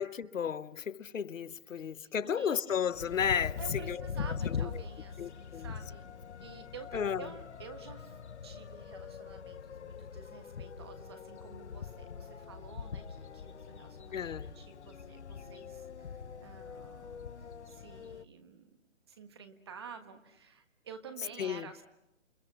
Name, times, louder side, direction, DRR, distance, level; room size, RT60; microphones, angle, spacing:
voice 1, 0.0-4.0 4.4-4.8 5.2-5.7 6.9-7.3 14.1-14.5 21.4-21.7, left 8 dB, 75° left, 1.0 m, -33 dB
voice 2, 2.2-2.7 3.6-6.1 6.4-18.7 19.1-21.8, right 6 dB, 20° right, 1.3 m, -51 dB
sound 1, 2.9-18.2, left 6 dB, 60° left, 1.2 m, -42 dB
29.5 x 29.0 x 6.1 m
hypercardioid pair, 175°, 39 cm